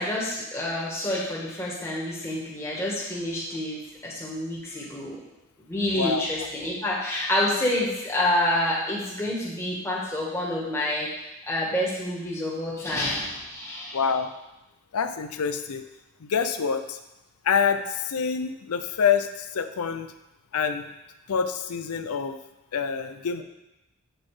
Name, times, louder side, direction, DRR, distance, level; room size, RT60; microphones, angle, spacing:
voice 1, 0.0-5.2 5.7-14.0, left 1 dB, 10° left, -5 dB, 1.7 m, -28 dB
voice 2, 5.9-6.5 13.9-14.3 14.9-15.9 16.2-17.0 17.4-20.1 20.5-20.9 21.3-22.4 22.7-23.4, left 6 dB, 90° left, 9 dB, 0.5 m, -26 dB
7.8 x 4.2 x 4.9 m, 0.96 s
head